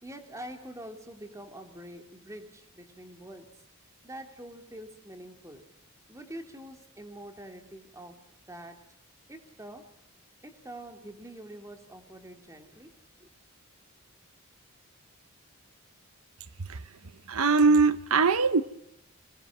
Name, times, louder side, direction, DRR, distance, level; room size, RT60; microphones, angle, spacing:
voice 1, 0.0-3.5 4.0-5.6 6.1-8.2 8.5-8.8 9.3-9.9 10.4-13.3, right 1 dB, 15° right, 5 dB, 3.4 m, -45 dB
voice 2, 17.3-18.6, right 4 dB, 85° right, 14 dB, 1.0 m, -21 dB
26.0 x 20.5 x 7.5 m, 0.77 s
head